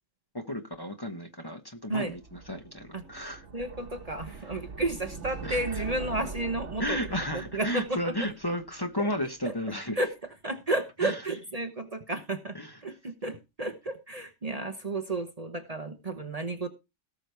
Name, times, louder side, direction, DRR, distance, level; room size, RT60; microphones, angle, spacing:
voice 1, 0.3-3.5 5.4-5.8 6.8-10.0 11.0-11.2 12.5-12.8, equal, 20° left, 1.2 m, -33 dB
sound 1, 2.1-9.2, right 4 dB, 75° right, 1.7 m, -42 dB
voice 2, 3.5-7.0 7.3-8.3 9.5-9.6 10.0-10.1 10.4-16.7, right 2 dB, 35° right, 1.1 m, -32 dB
18.0 x 6.2 x 3.4 m
omnidirectional pair, 1.2 m